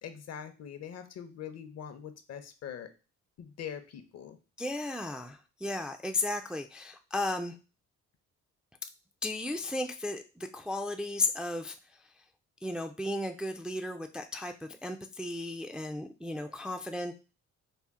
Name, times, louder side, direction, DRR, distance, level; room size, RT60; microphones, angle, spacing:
voice 1, 0.0-2.9 3.4-4.4, left 8 dB, 60° left, 8 dB, 0.7 m, -43 dB
voice 2, 4.6-7.6 9.2-12.1 12.6-17.1, left 2 dB, 5° right, 5 dB, 0.3 m, -35 dB
4.3 x 2.1 x 3.5 m, 0.31 s
cardioid pair, 90°, 30 cm